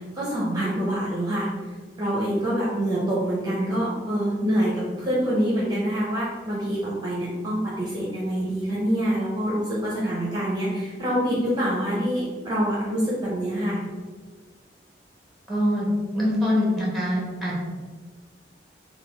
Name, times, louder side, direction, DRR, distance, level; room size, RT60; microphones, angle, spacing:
voice 1, 0.1-1.5 2.0-13.8, equal, 20° right, -6 dB, 0.7 m, -25 dB
voice 2, 15.5-15.9 16.1-17.6, left 1 dB, ahead, -5 dB, 1.1 m, -24 dB
3.7 x 2.3 x 4.4 m, 1.4 s
head